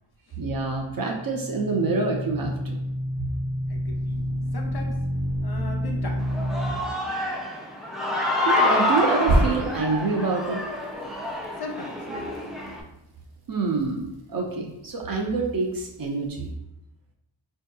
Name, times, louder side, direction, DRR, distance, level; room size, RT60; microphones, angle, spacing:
voice 1, 0.4-2.8 8.5-10.6 13.5-16.5, right 3 dB, 45° right, -1 dB, 0.6 m, -26 dB
sound 1, 0.9-6.7 9.2-10.0, equal, 85° right, 0.8 m, -27 dB
voice 2, 3.7-5.0 5.4-6.3 11.6-12.4, left 3 dB, 50° left, 1 dB, 0.7 m, -38 dB
Human voice / Cheering, 6.2-12.8, left 1 dB, ahead, 0.3 m, -27 dB
4.5 x 2.7 x 2.2 m, 0.88 s
wide cardioid pair, 110°, 49 cm